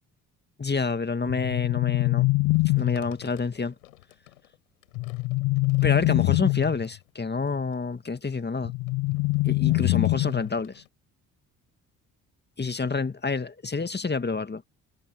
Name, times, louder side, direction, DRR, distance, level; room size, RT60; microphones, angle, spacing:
voice 1, 0.6-2.3 2.8-3.8 5.8-8.7 9.4-10.8 12.6-14.6, left 4 dB, 25° left, 2.1 m, -28 dB
sound 1, 1.3-3.3 4.9-6.8 8.6-10.6, left 23 dB, 60° left, 0.5 m, -24 dB
sound 2, 2.5-10.9, left 17 dB, 85° left, 5.9 m, -55 dB
hypercardioid pair, 45°, 40 cm